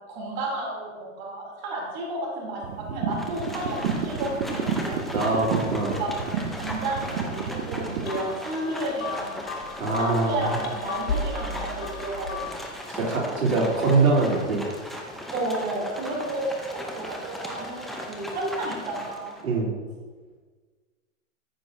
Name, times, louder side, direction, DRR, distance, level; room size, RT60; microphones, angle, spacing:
voice 1, 0.1-2.6 2.9-5.0 6.0-6.1 6.5-9.4 9.9-12.5 15.3-19.4, right 2 dB, 35° right, -3 dB, 3.1 m, -32 dB
sound 1, 2.6-8.2, right 6 dB, 60° right, 1.3 m, -31 dB
Livestock farm animals working animals, 3.1-19.5, equal, ahead, 0.6 m, -37 dB
voice 2, 5.1-6.0 9.8-10.5 12.9-14.6 19.4-19.7, right 3 dB, 85° right, -3 dB, 3.2 m, -23 dB
sound 2, 8.0-12.8, left 4 dB, 70° left, 1.6 m, -35 dB
14.0 x 7.9 x 2.7 m, 1.4 s
hypercardioid pair, 140°, 40 cm